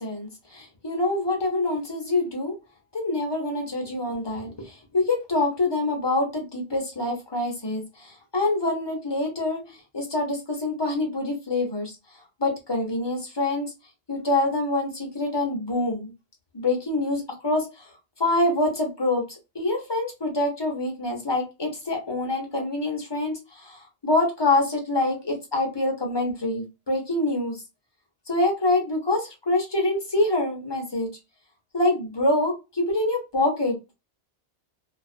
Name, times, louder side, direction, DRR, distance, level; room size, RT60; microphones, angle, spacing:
voice 1, 0.0-2.5 2.9-12.0 12.4-13.7 14.1-16.1 16.5-17.9 18.2-19.2 19.5-27.6 28.3-31.1 31.7-33.9, left 2 dB, 25° left, 0.7 m, -26 dB
2.3 x 2.3 x 2.4 m
omnidirectional pair, 1.1 m